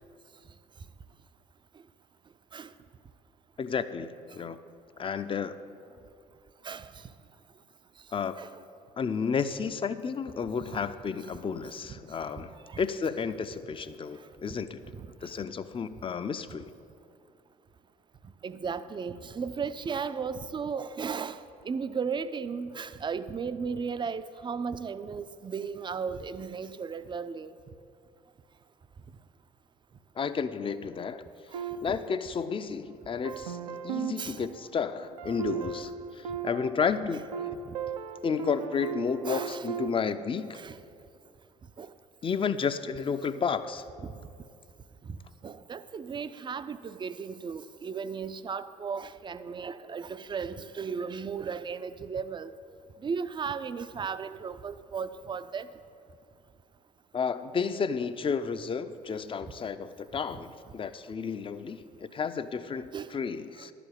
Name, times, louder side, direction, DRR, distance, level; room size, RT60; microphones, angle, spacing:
voice 1, 3.6-4.6 5.0-5.6 8.1-8.4 9.0-14.8 15.2-16.7 30.2-31.2 31.8-33.6 33.8-37.3 38.2-40.6 42.2-43.9 57.1-63.7, left 6 dB, 25° left, 0.5 m, -32 dB
voice 2, 18.4-21.4 21.7-27.5 31.5-31.6 31.9-32.0 34.2-34.4 39.3-39.6 40.5-40.8 41.8-41.9 44.0-44.1 45.4-52.5 53.0-55.7 62.9-63.1 63.6-63.7, right 6 dB, 25° right, 0.5 m, -35 dB
sound 1, 31.5-32.8 33.2-39.9, right 7 dB, 75° right, 0.5 m, -37 dB
11.5 x 5.0 x 8.6 m
figure-of-eight pair, 55°, 20 cm